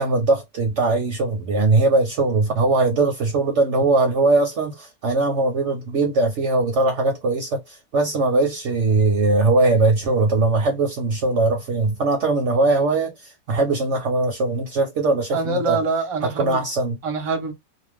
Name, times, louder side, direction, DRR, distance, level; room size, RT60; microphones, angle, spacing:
voice 1, 0.0-13.1 13.5-15.8 16.2-17.0, right 3 dB, 60° right, 0.8 m, -20 dB
voice 2, 15.3-16.6 17.0-17.5, right 4 dB, 30° right, 0.7 m, -24 dB
2.4 x 2.2 x 3.3 m
omnidirectional pair, 1.6 m